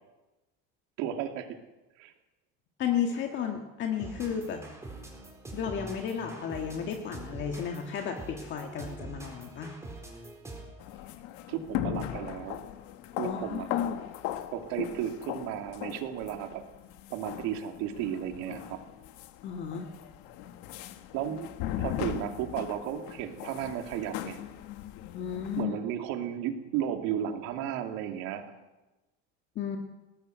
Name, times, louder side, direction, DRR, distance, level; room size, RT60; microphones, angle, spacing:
voice 1, 1.0-1.6 2.0-2.1 11.5-12.6 13.2-13.7 14.5-16.6 17.1-18.8 21.1-21.5 21.8-24.4 25.6-28.4, right 10 dB, 70° right, 5 dB, 2.7 m, -34 dB
voice 2, 2.8-4.6 5.5-9.8 13.2-14.0 19.4-19.9 25.1-25.8 29.6-29.8, left 8 dB, 40° left, 3 dB, 1.8 m, -33 dB
sound 1, 4.0-10.9, right 2 dB, 10° right, 4.1 m, -44 dB
sound 2, 10.8-25.6, left 12 dB, 75° left, 1.7 m, -39 dB
20.0 x 18.5 x 8.0 m, 1.1 s
cardioid pair, 165°, 30 cm